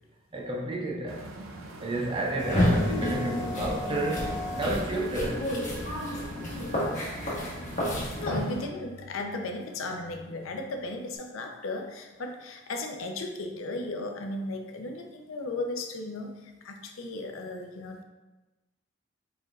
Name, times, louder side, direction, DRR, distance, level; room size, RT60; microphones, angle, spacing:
voice 1, 0.3-1.3 1.8-5.6, right 2 dB, 25° right, 0.4 m, -31 dB
sound 1, 1.1-8.7, right 2 dB, 80° right, 0.5 m, -44 dB
sound 2, 2.4-8.4, left 1 dB, 40° left, 1.1 m, -30 dB
sound 3, 4.3-11.2, equal, ahead, 0.9 m, -46 dB
voice 2, 8.1-18.0, left 2 dB, 85° left, 0.6 m, -35 dB
4.5 x 4.4 x 2.4 m
head